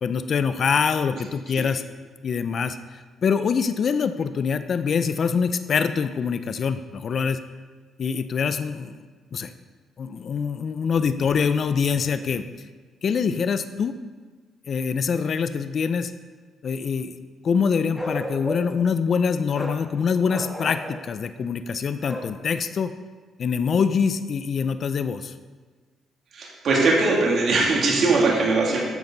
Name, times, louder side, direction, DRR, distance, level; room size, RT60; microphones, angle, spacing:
voice 1, 0.0-1.8 2.2-7.4 8.0-9.0 9.3-9.5 10.0-12.5 13.0-13.9 14.7-16.1 16.6-17.1 17.4-22.9 23.4-25.3, left 6 dB, 50° left, 10 dB, 0.5 m, -24 dB
Bark, 17.9-18.8 19.5-19.8 20.3-21.0 22.0-22.3, equal, 10° left, 1.6 m, -33 dB
voice 2, 26.3-28.8, right 3 dB, 60° right, -3 dB, 2.7 m, -20 dB
10.5 x 7.2 x 4.0 m, 1.4 s
cardioid pair, 90°, 0 cm